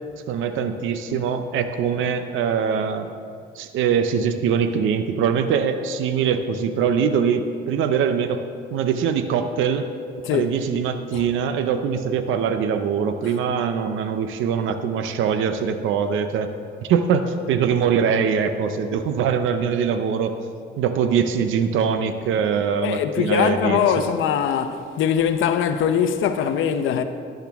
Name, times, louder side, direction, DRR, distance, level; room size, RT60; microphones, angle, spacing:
voice 1, 0.3-3.1 3.6-8.4 8.7-9.8 10.3-16.5 16.8-20.3 20.8-24.0, right 7 dB, 85° right, 0.6 m, -22 dB
voice 2, 22.8-27.0, left 8 dB, 80° left, 0.7 m, -22 dB
12.0 x 10.5 x 3.5 m
cardioid pair, 90°, 20 cm